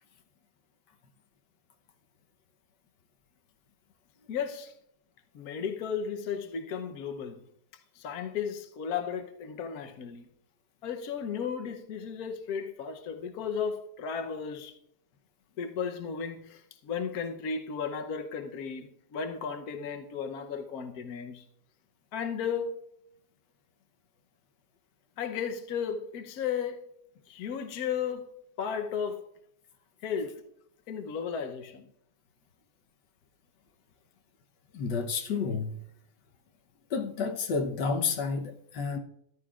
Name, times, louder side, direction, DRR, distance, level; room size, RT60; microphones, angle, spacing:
voice 1, 4.3-4.7 5.3-7.4 8.0-10.3 10.8-14.7 15.6-21.4 22.1-22.8 25.2-26.8 27.3-28.3 28.6-29.3 30.0-30.4 30.9-31.9, left 6 dB, 65° left, 1.3 m, -34 dB
voice 2, 34.7-35.8 36.9-39.0, left 5 dB, 85° left, 1.6 m, -30 dB
13.5 x 11.5 x 2.4 m
omnidirectional pair, 1.8 m